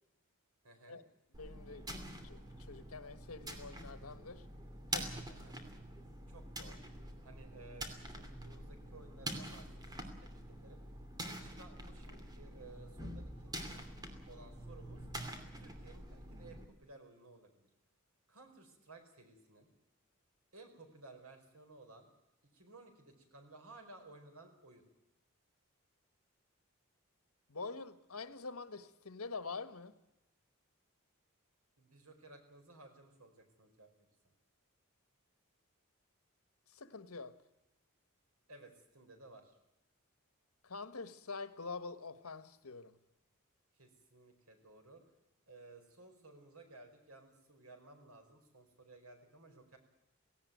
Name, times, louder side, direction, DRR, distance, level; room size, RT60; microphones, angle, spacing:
voice 1, 0.6-1.0 5.3-5.6 6.3-6.9 7.2-10.8 11.2-13.8 14.3-15.1 15.5-17.7 18.3-19.7 20.5-22.1 22.5-24.8 31.8-33.9 34.2-34.3 38.5-39.6 43.8-45.0 45.5-49.8, right 2 dB, 90° right, 4.9 m, -57 dB
sound 1, 1.3-16.6, right 1 dB, 20° right, 2.8 m, -46 dB
voice 2, 1.4-1.9 2.2-4.4 4.9-5.2 27.5-29.9 36.7-37.3 40.6-43.0, left 4 dB, 85° left, 1.4 m, -46 dB
18.0 x 17.5 x 9.3 m
head